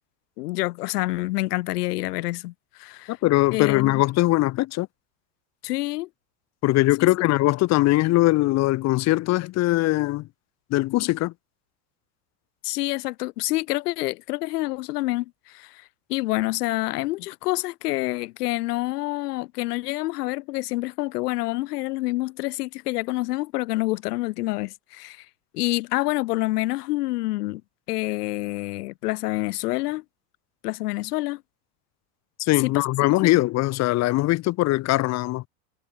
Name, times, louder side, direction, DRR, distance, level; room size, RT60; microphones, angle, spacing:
voice 1, 0.4-3.2 3.5-4.0 5.6-6.1 7.0-7.1 12.6-25.3 25.5-27.6 27.9-30.0 30.6-31.4 32.6-32.8 33.2-33.3, left 19 dB, 75° left, 6.0 m, -27 dB
voice 2, 3.1-4.9 6.6-10.3 10.7-11.3 32.4-35.4, left 18 dB, 35° left, 0.7 m, -21 dB
supercardioid pair, 110°, 47 cm